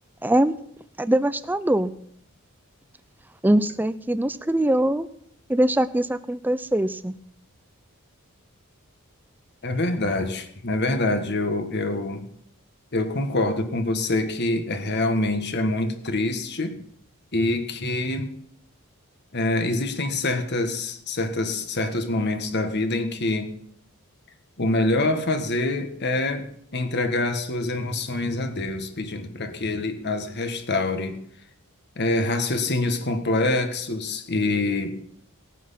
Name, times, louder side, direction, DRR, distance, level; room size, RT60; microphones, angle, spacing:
voice 1, 0.2-0.5 1.0-1.9 3.4-5.1 5.5-7.1, right 1 dB, 10° right, 14 dB, 0.5 m, -22 dB
voice 2, 9.6-12.2 12.9-16.8 17.3-18.3 19.3-23.5 24.6-31.2 31.9-35.0, left 2 dB, 50° left, 7 dB, 1.6 m, -25 dB
18.0 x 9.3 x 5.8 m, 0.67 s
head